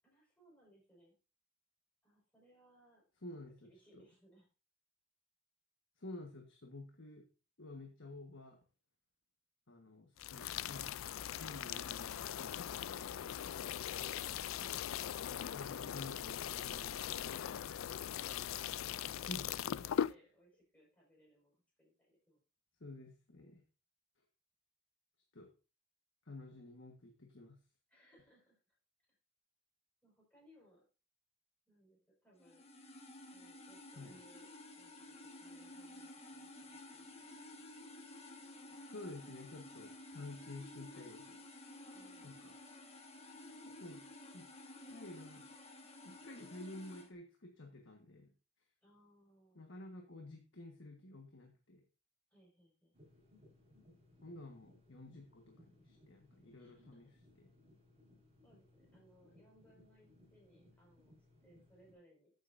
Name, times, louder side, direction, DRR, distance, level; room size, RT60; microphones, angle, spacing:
voice 1, 0.0-1.2 2.0-3.0 3.6-4.5 17.9-22.4 27.9-28.8 30.0-30.8 31.7-32.7 33.3-37.4 41.9-42.3 48.8-49.6 52.3-52.9 56.6-57.1 58.4-62.3, right 1 dB, 5° left, -4 dB, 5.4 m, -67 dB
voice 2, 3.2-4.0 6.0-7.3 7.6-8.6 9.7-10.9 11.4-13.0 14.3-14.8 15.5-17.4 19.3-19.4 22.8-23.6 25.3-25.5 26.3-27.6 33.9-34.2 38.9-41.4 42.2-42.5 43.8-44.1 44.3-44.5 44.9-45.5 46.0-48.3 49.5-51.8 54.2-57.1 57.4-57.5, left 2 dB, 65° left, 2 dB, 1.5 m, -51 dB
sound 1, 10.2-20.1, left 10 dB, 90° left, 0.4 m, -40 dB
sound 2, 32.4-47.1, left 2 dB, 30° left, 1.6 m, -53 dB
sound 3, 52.9-61.9, left 1 dB, 30° right, 4.9 m, -66 dB
14.0 x 8.0 x 2.6 m, 0.33 s
head